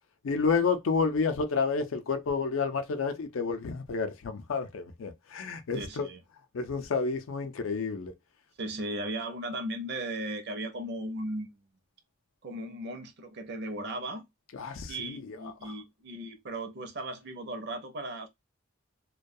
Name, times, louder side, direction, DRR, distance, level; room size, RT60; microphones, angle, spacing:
voice 1, 0.2-6.1 6.5-8.1 14.5-15.7, left 5 dB, 75° left, 0.4 m, -30 dB
voice 2, 5.7-6.2 8.6-11.5 12.4-14.2 14.9-18.3, right 1 dB, 55° right, 0.5 m, -36 dB
2.2 x 2.2 x 2.6 m
head